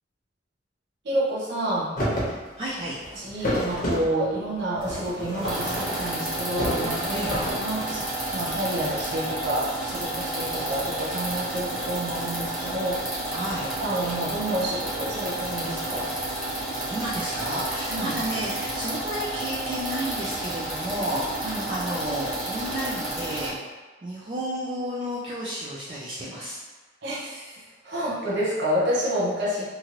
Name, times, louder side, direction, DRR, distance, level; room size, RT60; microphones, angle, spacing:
voice 1, 1.0-1.9 3.2-8.1 8.3-13.0 13.8-16.1 17.9-18.1 21.4-21.7 27.0-29.6, right 1 dB, 60° right, -7 dB, 0.7 m, -29 dB
sound 1, 2.0-2.3 2.7-4.1 4.7-6.3 6.5-7.5, equal, 50° left, 0.9 m, -29 dB
voice 2, 2.6-3.0 7.1-7.4 13.3-13.6 16.9-23.6 24.0-26.6, equal, 30° right, -7 dB, 0.4 m, -32 dB
sound 2, 5.4-23.5, right 1 dB, ahead, 1.0 m, -31 dB
2.9 x 2.5 x 2.9 m, 1.2 s
head